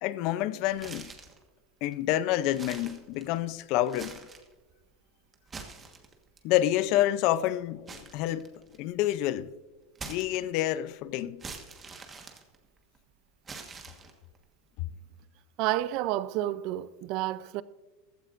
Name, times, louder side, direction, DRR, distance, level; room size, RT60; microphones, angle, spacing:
voice 1, 0.0-1.1 1.8-4.2 6.4-8.5 8.8-9.5 10.1-11.4 14.8-14.9, left 13 dB, 50° left, 0.5 m, -28 dB
sound 1, 0.7-1.4 1.9-2.0 2.5-3.5 3.8-4.5 5.3-6.4 7.9-8.9 10.0-10.8 11.4-13.0 13.5-14.4, right 4 dB, 20° right, 1.4 m, -44 dB
voice 2, 15.6-17.6, right 14 dB, 50° right, 0.5 m, -30 dB
15.0 x 13.5 x 2.6 m
supercardioid pair, 145°, 0 cm